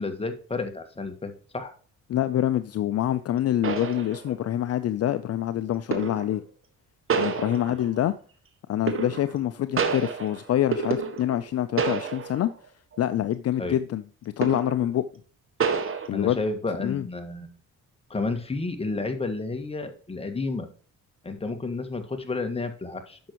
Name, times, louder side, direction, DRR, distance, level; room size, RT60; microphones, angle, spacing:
voice 1, 0.0-1.7 13.6-13.8 16.1-17.5 18.1-20.7 21.2-23.2, left 3 dB, 20° left, 1.7 m, -31 dB
voice 2, 2.1-6.4 7.1-8.1 8.7-12.5 13.0-14.0 14.4-15.0 16.1-16.4 16.8-17.0, left 12 dB, 55° left, 0.5 m, -26 dB
sound 1, 3.0-3.1 3.6-4.6 5.9-6.4 7.1-8.0 8.9-9.5 9.8-11.5 11.8-12.5 12.9-13.1 14.4-14.9 15.6-16.1, right 6 dB, 45° right, 1.5 m, -29 dB
10.5 x 6.2 x 3.0 m
cardioid pair, 90°, 30 cm